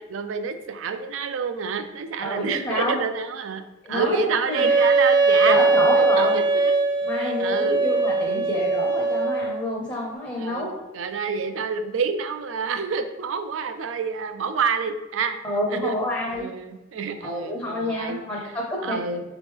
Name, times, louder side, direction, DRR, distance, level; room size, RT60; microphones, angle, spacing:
voice 1, 0.0-3.6 3.9-5.7 5.9-6.8 7.1-7.8 8.3-8.5 10.4-15.4 15.7-15.9 16.3-18.5 18.8-19.2, right 5 dB, 90° right, 9 dB, 0.4 m, -28 dB
voice 2, 2.2-3.0 3.8-4.2 4.5-4.7 5.4-6.4 7.1-10.7 15.4-16.5 17.2-19.0, left 1 dB, 20° left, -3 dB, 0.6 m, -28 dB
Wind instrument woodwind instrument, 4.5-9.6, right 3 dB, 20° right, 0.5 m, -20 dB
3.9 x 3.0 x 3.5 m, 1.0 s
head